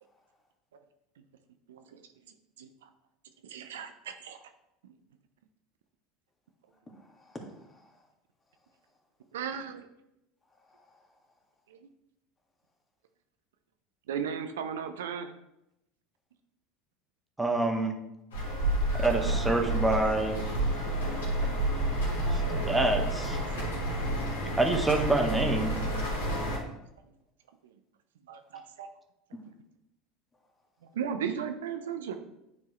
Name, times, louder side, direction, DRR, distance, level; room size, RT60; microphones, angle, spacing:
voice 1, 1.7-2.0 2.6-2.9 3.4-4.4 4.8-4.9 9.3-9.9 11.7-11.9 14.1-15.3 20.6-21.3 23.4-23.8 24.2-24.3 24.9-25.0 28.3-28.9 30.9-32.2, right 7 dB, 75° right, 8 dB, 0.5 m, -37 dB
voice 2, 6.9-8.1 10.5-11.2 29.3-29.4, left 1 dB, 20° left, 1 dB, 1.8 m, -49 dB
voice 3, 17.4-17.9 18.9-20.4 22.3-23.4 24.6-25.7, right 2 dB, 10° right, 4 dB, 1.0 m, -27 dB
sound 1, 18.3-26.6, right 1 dB, 80° left, 2.3 m, -30 dB
9.5 x 4.6 x 3.0 m, 0.85 s
hypercardioid pair, 75°, 0 cm